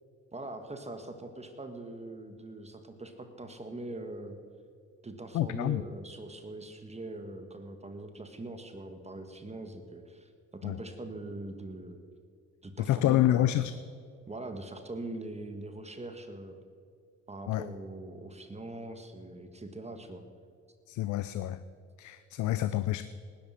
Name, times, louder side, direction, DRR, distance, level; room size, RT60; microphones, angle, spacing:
voice 1, 0.3-4.4 5.0-12.0 12.6-13.6 14.3-16.6 17.3-20.2, right 2 dB, 20° right, 7 dB, 1.6 m, -42 dB
voice 2, 5.3-5.9 10.6-10.8 12.8-13.7 17.5-17.7 20.9-21.6 22.0-23.1, left 13 dB, 75° left, 14 dB, 0.6 m, -28 dB
19.0 x 11.0 x 5.8 m, 2.3 s
cardioid pair, 90°, 30 cm